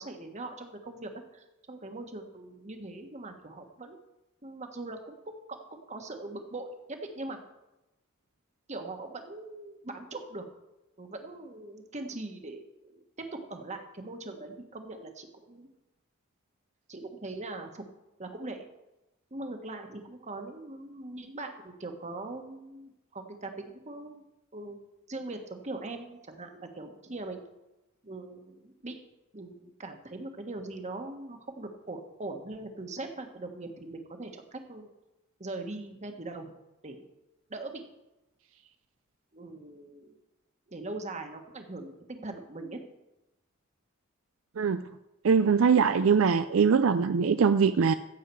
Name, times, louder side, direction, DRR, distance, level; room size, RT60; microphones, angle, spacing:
voice 1, 0.0-4.0 4.4-7.4 8.7-10.4 11.0-15.7 16.9-17.8 18.2-18.7 19.3-24.2 24.5-24.8 25.1-27.4 28.0-29.0 29.3-34.9 35.4-36.5 36.8-37.0 37.5-37.9 39.3-40.2 40.7-42.8, right 2 dB, 35° right, 5 dB, 1.5 m, -41 dB
voice 2, 45.2-47.9, right 6 dB, 70° right, 10 dB, 0.4 m, -22 dB
15.0 x 7.6 x 4.7 m, 0.95 s
head